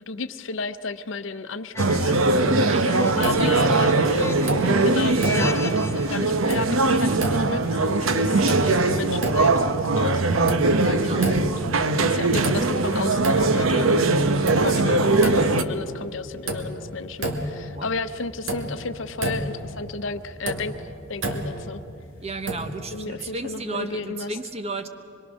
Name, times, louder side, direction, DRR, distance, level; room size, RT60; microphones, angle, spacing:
voice 1, 0.1-2.5 3.2-4.1 4.8-9.5 10.0-11.6 12.0-14.2 14.5-21.8 22.9-24.3, left 3 dB, 65° left, 11 dB, 0.8 m, -32 dB
sound 1, 1.7-6.2, left 2 dB, 15° left, 0.4 m, -35 dB
sound 2, 1.8-15.6, right 3 dB, 85° right, 0.9 m, -21 dB
voice 2, 2.6-4.3 11.0-11.4 17.8-17.9 22.2-24.9, right 2 dB, 30° right, 8 dB, 1.0 m, -34 dB
sound 3, 3.2-3.9 4.3-4.9 5.2-5.9 6.3-6.9 7.1-7.8 8.2-8.9 9.2-9.8 10.2-10.9 11.2-11.8 12.2-12.9 13.2-13.8 14.2-15.7 16.1-16.2 16.5-17.7 18.0-18.1 18.5-19.7 20.2-21.7 22.5-22.9, right 1 dB, 70° right, 2.2 m, -30 dB
25.0 x 22.5 x 6.3 m, 2.7 s
head